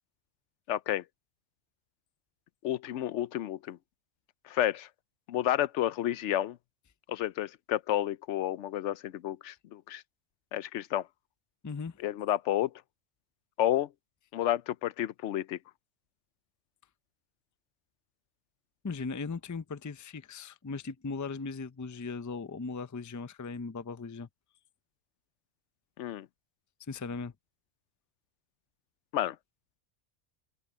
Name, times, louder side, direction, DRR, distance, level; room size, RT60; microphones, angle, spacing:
voice 1, 0.7-1.0 2.6-3.8 4.5-4.9 5.3-6.6 7.1-10.0 10.5-11.1 12.0-12.7 13.6-13.9 14.3-15.6 26.0-26.3 29.1-29.4, left 12 dB, 85° left, 0.9 m, -30 dB
voice 2, 11.6-12.0 18.8-24.3 26.9-27.3, left 4 dB, 25° left, 0.4 m, -38 dB
open air
omnidirectional pair, 1.2 m